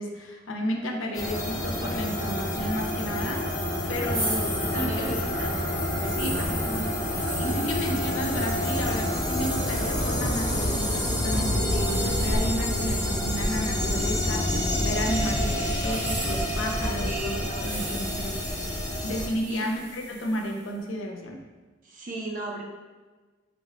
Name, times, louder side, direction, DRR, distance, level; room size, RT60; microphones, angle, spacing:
voice 1, 0.0-3.6 3.9-5.1 6.2-18.5 19.0-21.4, equal, 85° left, 1 dB, 0.5 m, -32 dB
sound 1, 1.1-19.3, left 1 dB, 20° left, 0.5 m, -28 dB
sound 2, 4.1-15.0 15.8-20.6, right 1 dB, 75° right, 1.1 m, -38 dB
voice 2, 4.7-5.6 5.9-6.6 17.0-18.0 19.5-19.6 21.8-22.6, right 2 dB, 45° right, -1 dB, 0.4 m, -36 dB
3.2 x 2.1 x 3.8 m, 1.3 s
head